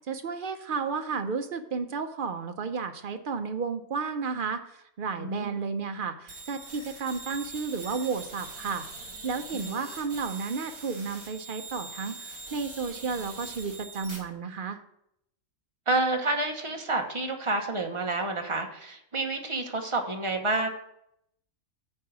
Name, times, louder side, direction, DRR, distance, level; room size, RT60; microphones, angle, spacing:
voice 1, 0.1-8.9 9.2-14.8, right 5 dB, 55° right, 7 dB, 0.6 m, -32 dB
voice 2, 5.2-5.6 9.5-9.8 15.9-20.7, right 2 dB, 25° right, 3 dB, 0.9 m, -29 dB
sound 1, 6.3-14.2, right 3 dB, 75° right, 3.0 m, -43 dB
8.7 x 4.7 x 6.2 m, 0.76 s
omnidirectional pair, 1.5 m